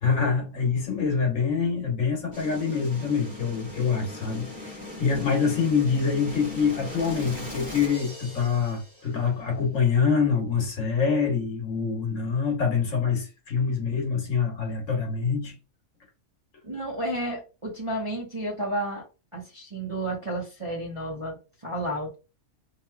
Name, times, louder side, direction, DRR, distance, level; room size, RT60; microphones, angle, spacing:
voice 1, 0.0-15.6, left 5 dB, 65° left, 1.3 m, -25 dB
sound 1, 2.3-9.2, left 1 dB, 5° right, 1.6 m, -39 dB
voice 2, 16.6-19.1 19.3-21.4 21.6-22.1, right 1 dB, 25° right, 0.8 m, -31 dB
3.2 x 2.9 x 2.3 m
omnidirectional pair, 1.5 m